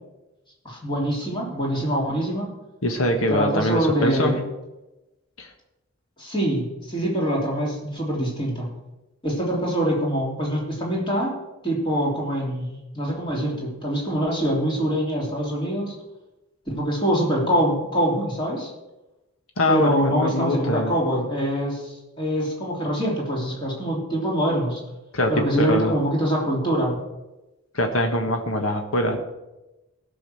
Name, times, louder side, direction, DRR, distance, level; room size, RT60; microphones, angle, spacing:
voice 1, 0.6-2.5 3.3-4.4 6.2-8.7 9.2-11.3 11.6-15.9 16.7-18.7 19.7-24.8 25.3-27.0, equal, 25° left, -2 dB, 3.2 m, -24 dB
voice 2, 2.8-4.4 5.4-5.5 19.6-20.9 25.1-25.9 27.7-29.2, left 1 dB, 80° left, 4 dB, 1.5 m, -23 dB
15.5 x 6.3 x 6.3 m, 1.0 s
head